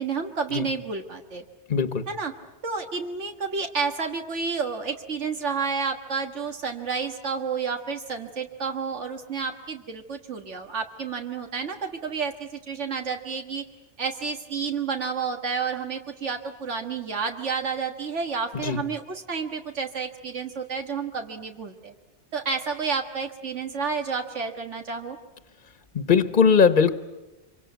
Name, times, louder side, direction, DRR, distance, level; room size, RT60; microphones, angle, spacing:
voice 1, 0.0-1.4 2.1-2.3 2.6-13.6 14.0-21.9 22.3-25.2, right 5 dB, 85° right, 4 dB, 1.9 m, -30 dB
voice 2, 1.7-2.1 18.5-18.8 25.9-27.0, left 6 dB, 45° left, 11 dB, 1.3 m, -20 dB
26.0 x 25.0 x 9.3 m, 0.99 s
omnidirectional pair, 1.2 m